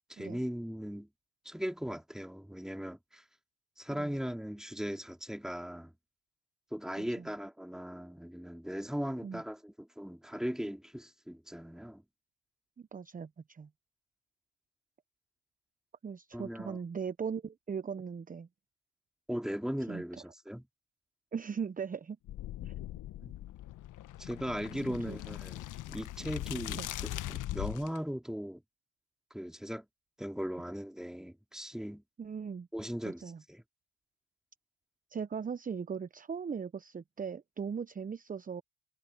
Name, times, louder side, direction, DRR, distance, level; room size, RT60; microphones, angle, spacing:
voice 1, 0.1-1.1 1.4-3.2 3.8-5.9 6.7-12.0 16.3-16.8 19.3-20.6 23.2-23.3 24.2-28.6 29.3-29.8 30.2-32.0 32.7-33.2 33.5-33.6, equal, ahead, 3.2 m, -38 dB
voice 2, 12.8-13.7 16.0-18.5 19.9-20.0 21.3-22.2 22.6-22.7 25.1-25.2 26.8-26.9 32.2-32.7 33.0-33.4 35.1-38.6, right 6 dB, 20° right, 0.9 m, -39 dB
sound 1, 22.3-28.0, left 14 dB, 50° left, 1.6 m, -40 dB
hypercardioid pair, 70°, 38 cm